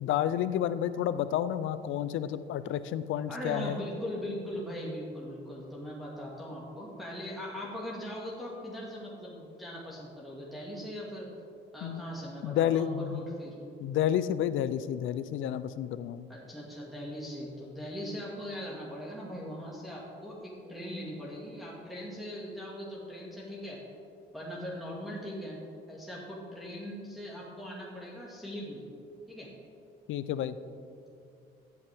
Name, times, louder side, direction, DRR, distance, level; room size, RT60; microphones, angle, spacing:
voice 1, 0.0-3.8 11.8-12.0 12.4-13.2 13.8-16.3 30.1-30.6, left 10 dB, 80° left, 14 dB, 0.5 m, -30 dB
voice 2, 3.3-11.3 11.7-13.5 16.3-23.8 24.3-25.6 25.9-28.8 29.3-29.5, equal, ahead, -6 dB, 1.9 m, -40 dB
14.5 x 8.4 x 3.5 m, 2.5 s
cardioid pair, 90°, 20 cm